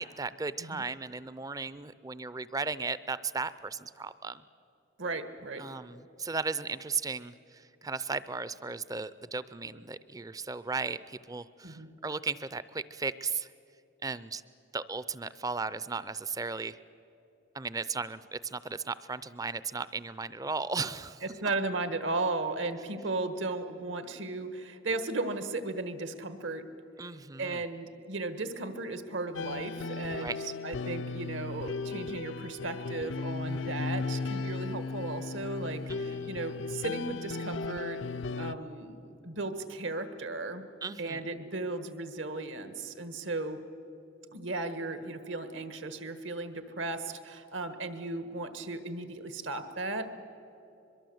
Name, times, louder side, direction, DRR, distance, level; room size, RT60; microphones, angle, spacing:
voice 1, 0.0-4.4 5.6-13.5 14.0-14.4 14.7-16.8 17.5-21.2 27.0-27.6 30.2-30.4 35.9-36.3 40.8-41.3, right 4 dB, 20° right, 16 dB, 0.5 m, -36 dB
voice 2, 5.0-5.7 11.6-11.9 21.2-26.6 27.4-38.0 38.4-40.6 41.0-43.6 44.3-50.1, right 2 dB, 75° right, 10 dB, 1.5 m, -36 dB
sound 1, 29.4-38.6, left 4 dB, 75° left, 0.5 m, -36 dB
23.0 x 22.5 x 7.9 m, 2.9 s
head